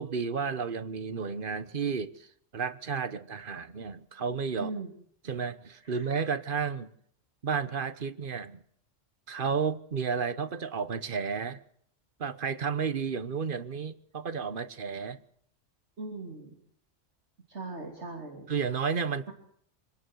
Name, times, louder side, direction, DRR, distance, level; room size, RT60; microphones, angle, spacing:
voice 1, 0.0-2.1 2.5-4.7 5.2-6.9 7.4-8.6 9.3-11.6 12.2-15.2 18.5-19.3, right 6 dB, 45° right, 1.2 m, -32 dB
voice 2, 4.5-4.9 5.8-6.1 16.0-16.5 17.5-18.5 19.3-19.4, right 3 dB, 65° right, 3.5 m, -39 dB
26.0 x 18.5 x 6.3 m
omnidirectional pair, 1.2 m